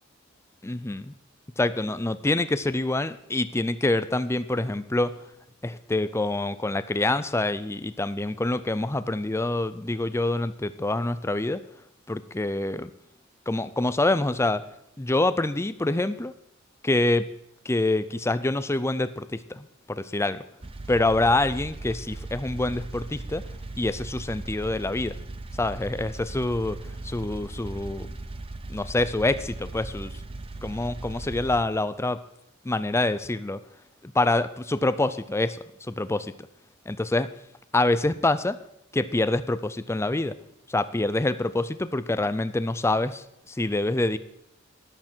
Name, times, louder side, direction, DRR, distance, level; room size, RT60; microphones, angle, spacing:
voice 1, 0.6-1.1 1.6-5.1 5.6-11.6 12.1-12.9 13.5-14.6 15.0-16.3 16.8-17.2 17.7-20.4 20.9-23.4 23.8-25.1 25.6-26.8 27.0-28.2 28.7-30.1 30.6-32.2 32.6-33.6 34.0-35.6 35.9-36.3 36.9-37.3 37.7-38.6 38.9-40.3 40.7-43.2 43.6-44.2, left 2 dB, 15° left, 13 dB, 0.5 m, -26 dB
sound 1, 20.6-31.6, right 2 dB, 30° right, 0.7 m, -38 dB
13.5 x 11.0 x 4.5 m, 0.77 s
head